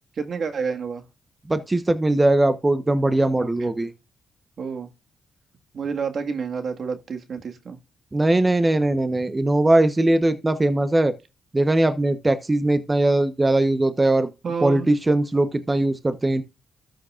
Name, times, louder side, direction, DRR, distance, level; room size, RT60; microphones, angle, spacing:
voice 1, 0.2-1.0 3.4-3.7 4.6-4.9 5.7-7.8 14.4-14.9, right 5 dB, 60° right, 1.7 m, -29 dB
voice 2, 1.5-3.9 8.1-11.1 11.5-14.3 14.6-16.4, right 2 dB, 20° right, 1.0 m, -20 dB
13.0 x 6.4 x 2.5 m
cardioid pair, 70°, 0 cm